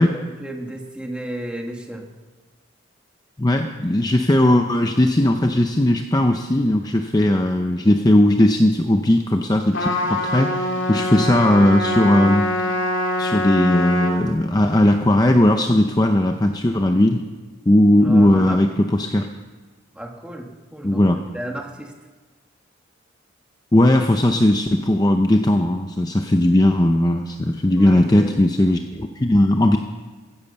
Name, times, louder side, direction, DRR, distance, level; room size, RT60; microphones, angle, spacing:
voice 1, 0.0-2.1 18.0-18.6 19.9-21.0 21.3-21.9 27.7-28.4, right 1 dB, 5° right, 2 dB, 1.3 m, -33 dB
voice 2, 3.4-12.5 13.2-17.2 17.7-19.3 20.8-21.2 23.7-29.8, left 1 dB, 20° left, 5 dB, 0.5 m, -17 dB
Trumpet, 9.7-14.2, left 1 dB, 65° left, 2.4 m, -24 dB
15.5 x 10.5 x 6.9 m, 1.3 s
head